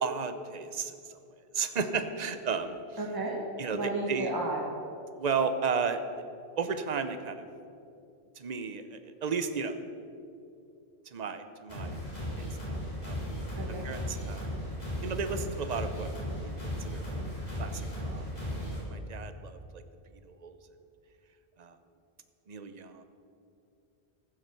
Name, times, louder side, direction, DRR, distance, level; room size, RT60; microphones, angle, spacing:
voice 1, 0.0-1.2 1.5-2.8 3.6-4.3 5.2-6.0 6.6-7.5 8.4-9.8 11.1-11.9 12.4-13.2 13.8-14.5 15.0-16.1 16.4-16.5 16.9-17.0 17.6-18.2 18.9-19.8 20.3-20.5 21.6-21.8 22.5-23.0, right 5 dB, 45° right, 9 dB, 0.8 m, -33 dB
voice 2, 3.0-3.4 3.7-4.6 13.6-13.8, right 2 dB, 20° right, -2 dB, 1.5 m, -33 dB
sound 1, 11.7-18.8, equal, 40° left, 4.2 m, -36 dB
15.0 x 7.6 x 6.9 m, 2.6 s
omnidirectional pair, 1.1 m